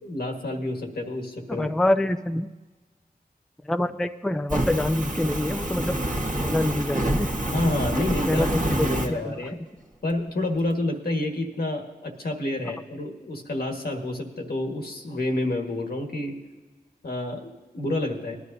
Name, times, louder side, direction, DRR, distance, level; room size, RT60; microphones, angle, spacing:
voice 1, 0.0-1.7 7.5-9.6 10.0-16.3 17.0-18.4, left 1 dB, 75° left, 1 dB, 1.5 m, -29 dB
voice 2, 1.5-2.5 3.6-6.0 6.4-7.3 8.3-9.3, left 1 dB, 5° left, 8 dB, 0.4 m, -26 dB
Fire, 4.5-9.1, right 1 dB, 50° right, 1.6 m, -27 dB
19.0 x 11.5 x 2.7 m, 1.2 s
cardioid pair, 40°, 16 cm